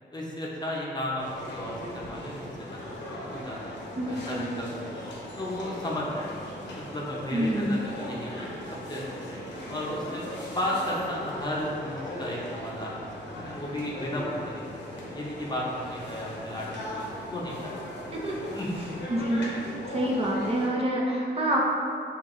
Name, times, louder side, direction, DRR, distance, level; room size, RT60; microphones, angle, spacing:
voice 1, 0.1-3.8 4.1-5.0 5.4-8.3 8.9-10.2 10.5-13.1 13.3-17.9 18.5-19.0, left 1 dB, 20° left, -5 dB, 0.7 m, -34 dB
sound 1, 1.2-20.7, left 1 dB, 85° left, 0.8 m, -39 dB
voice 2, 4.0-4.5 7.3-7.7 18.1-18.4 19.1-19.6 19.9-21.6, right 1 dB, 35° right, -3 dB, 0.5 m, -27 dB
5.7 x 2.8 x 2.5 m, 2.7 s
wide cardioid pair, 110°, 18 cm